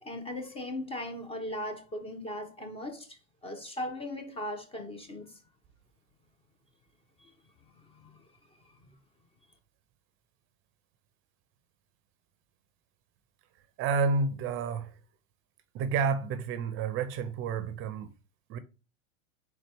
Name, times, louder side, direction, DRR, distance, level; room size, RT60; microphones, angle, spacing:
voice 1, 0.0-5.4 7.2-7.3 7.8-8.2, left 1 dB, 15° left, 0.5 m, -38 dB
voice 2, 13.8-15.0 15.7-18.1 18.5-18.6, right 4 dB, 30° right, 0.5 m, -30 dB
4.2 x 3.7 x 3.4 m
hypercardioid pair, 110°, 40 cm